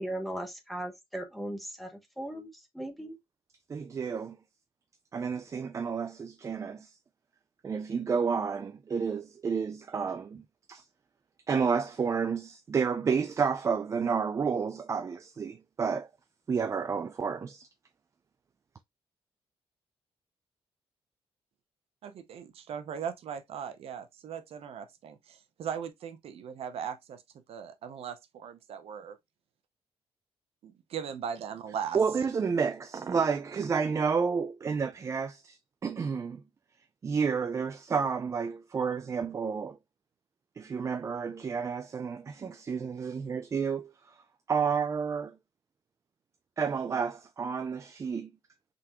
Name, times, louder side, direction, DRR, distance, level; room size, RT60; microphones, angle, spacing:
voice 1, 0.0-3.2, right 1 dB, ahead, 0.9 m, -38 dB
voice 2, 3.7-4.4 5.1-6.9 7.6-10.4 10.7-10.8 11.5-16.1 16.5-17.6 31.9-35.6 35.8-36.4 37.0-39.8 40.6-43.9 44.5-45.3 46.6-48.3, right 6 dB, 30° right, 0.3 m, -30 dB
voice 3, 22.0-29.2 30.6-32.0, right 8 dB, 70° right, 0.7 m, -39 dB
3.8 x 3.4 x 2.9 m
cardioid pair, 130°, 10 cm